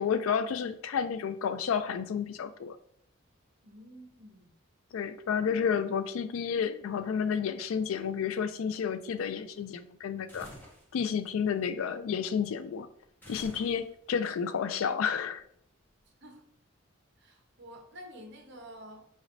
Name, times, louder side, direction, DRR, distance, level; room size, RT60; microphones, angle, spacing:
voice 1, 0.0-2.8 4.9-10.5 10.9-12.9 13.3-15.4, left 7 dB, 70° left, 11 dB, 0.3 m, -31 dB
voice 2, 3.6-4.6 16.2-16.5 17.2-19.1, equal, 55° right, 3 dB, 0.8 m, -49 dB
sound 1, 10.3-10.9 13.2-14.2, equal, 10° left, 0.8 m, -49 dB
5.0 x 3.1 x 2.6 m, 0.66 s
head